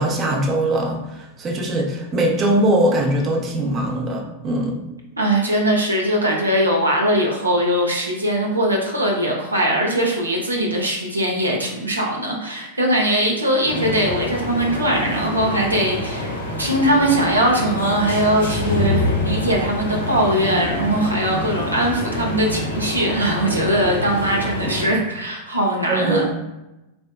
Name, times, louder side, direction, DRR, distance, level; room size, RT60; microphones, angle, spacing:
voice 1, 0.0-4.8 25.9-26.2, right 1 dB, 25° right, 1 dB, 0.6 m, -21 dB
voice 2, 5.2-26.2, right 1 dB, 80° right, -1 dB, 0.6 m, -20 dB
sound 1, 13.6-24.9, left 1 dB, 65° left, 0.8 m, -26 dB
4.2 x 2.7 x 2.2 m, 0.96 s
figure-of-eight pair, 90°, 0 cm